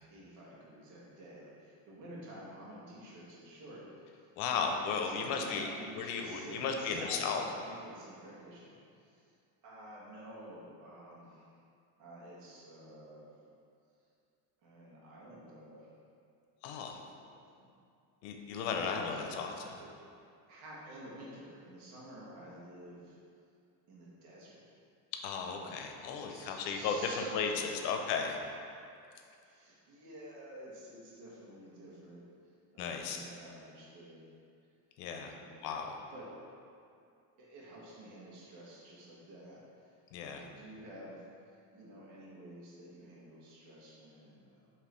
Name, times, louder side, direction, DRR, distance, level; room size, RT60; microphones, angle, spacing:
voice 1, 0.1-9.2 9.6-11.5 12.0-13.5 14.6-15.9 17.1-17.7 18.6-19.4 19.8-19.9 20.5-23.2 23.9-24.6 25.5-25.8 26.3-27.8 29.4-34.2 35.3-35.6 36.1-36.4 37.4-44.7, right 1 dB, 70° right, -6 dB, 1.3 m, -51 dB
voice 2, 4.4-5.7 5.9-7.4 16.6-17.0 18.2-19.5 25.2-27.5 27.8-28.4 32.8-33.3 35.0-35.3 35.6-36.0 40.1-40.4, left 5 dB, 85° left, 3 dB, 0.7 m, -35 dB
5.0 x 3.0 x 3.1 m, 2.4 s
cardioid pair, 135°, 50 cm